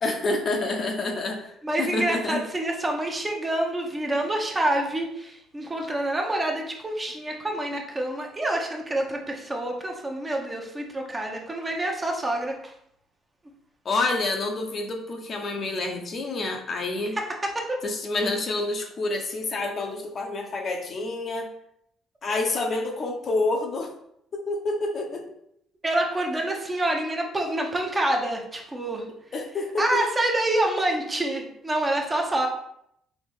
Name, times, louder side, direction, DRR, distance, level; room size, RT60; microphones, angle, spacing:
voice 1, 0.0-1.5 1.8-2.4 13.8-17.2 17.8-21.5 22.2-23.9 24.3-25.3 29.3-30.0, left 2 dB, 45° left, 3 dB, 0.7 m, -28 dB
voice 2, 1.6-12.7 17.1-17.3 17.5-17.8 25.8-29.0 29.8-32.5, right 1 dB, 20° right, 1 dB, 0.9 m, -27 dB
4.1 x 2.9 x 3.5 m, 0.74 s
cardioid pair, 90°, 0 cm